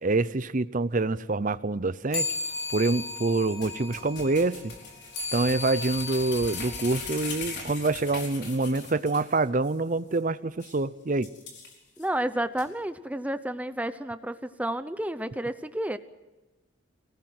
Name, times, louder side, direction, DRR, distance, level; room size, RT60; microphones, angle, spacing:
voice 1, 0.0-2.3 2.7-4.7 5.3-11.3, right 3 dB, 40° right, 15 dB, 0.7 m, -26 dB
sound 1, 2.1-7.9, left 3 dB, 30° left, 3.7 m, -36 dB
sound 2, 3.6-9.4 9.6-9.7 10.1-10.2 10.6-10.8 11.2-12.1 12.6-12.7, left 4 dB, 55° left, 4.7 m, -40 dB
voice 2, 12.0-16.0, right 1 dB, 5° right, 12 dB, 0.7 m, -31 dB
24.0 x 18.5 x 7.8 m, 1.1 s
head